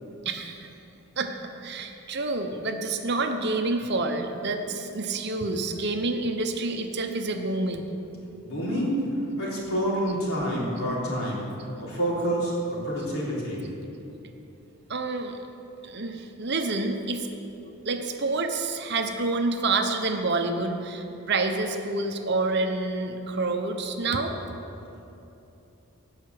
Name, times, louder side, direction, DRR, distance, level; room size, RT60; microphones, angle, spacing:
voice 1, 0.2-0.7 1.2-1.3 1.6-7.9 10.1-10.2 11.6-11.7 14.9-15.4 15.8-17.3 17.8-24.3, right 3 dB, 50° right, 5 dB, 0.9 m, -28 dB
voice 2, 8.4-9.0 9.4-11.4 11.8-13.6, equal, 70° left, -5 dB, 3.7 m, -28 dB
17.5 x 5.8 x 7.7 m, 2.9 s
head